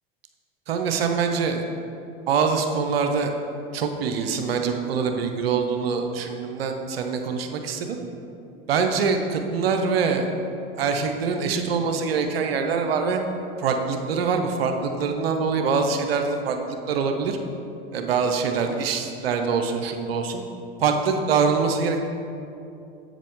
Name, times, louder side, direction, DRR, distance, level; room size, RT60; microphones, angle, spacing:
voice 1, 0.7-1.6 2.3-3.3 3.7-8.0 8.7-10.3 10.8-13.2 13.6-17.4 17.9-20.4 20.8-22.0, right 5 dB, 85° right, 5 dB, 0.7 m, -24 dB
7.7 x 7.3 x 3.6 m, 2.7 s
hypercardioid pair, 85°, 29 cm